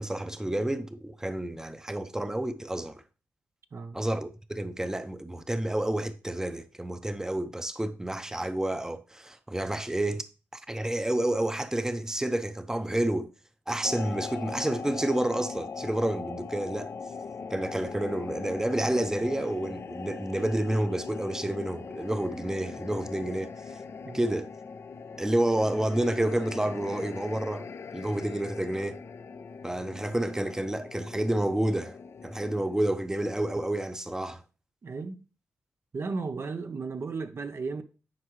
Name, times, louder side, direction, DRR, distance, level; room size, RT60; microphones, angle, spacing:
voice 1, 0.0-3.0 3.9-10.2 10.5-13.3 13.7-16.9 17.5-23.7 24.1-24.5 25.2-27.7 27.9-29.0 29.6-32.0 32.2-34.4, right 1 dB, 10° right, 0.7 m, -29 dB
sound 1, 13.8-32.8, left 5 dB, 55° left, 0.4 m, -40 dB
voice 2, 34.8-35.2 35.9-37.8, right 4 dB, 50° right, 0.6 m, -35 dB
9.6 x 4.5 x 3.1 m
supercardioid pair, 50°, 5 cm